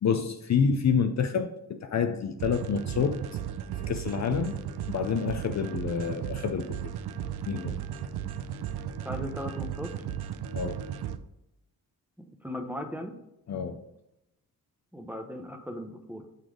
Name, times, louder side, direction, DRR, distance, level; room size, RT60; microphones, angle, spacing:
voice 1, 0.0-3.3 3.9-4.6 4.9-6.9 7.5-7.8 10.5-10.8 13.5-13.8, left 6 dB, 45° left, 0.5 m, -28 dB
sound 1, 2.4-11.2, right 9 dB, 90° right, 0.5 m, -35 dB
voice 2, 9.0-9.9 12.4-13.1 14.9-16.2, left 1 dB, 5° right, 1.0 m, -37 dB
6.7 x 4.0 x 4.8 m
cardioid pair, 75°, 38 cm